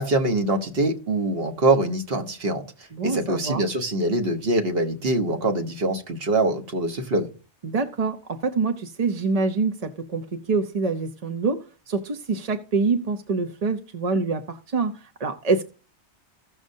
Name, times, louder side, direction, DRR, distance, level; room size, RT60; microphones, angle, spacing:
voice 1, 0.0-2.6 3.0-7.3, right 2 dB, 60° right, 1.4 m, -24 dB
voice 2, 2.9-3.6 7.6-15.6, right 4 dB, 40° right, 0.6 m, -26 dB
16.0 x 6.3 x 2.7 m
omnidirectional pair, 1.2 m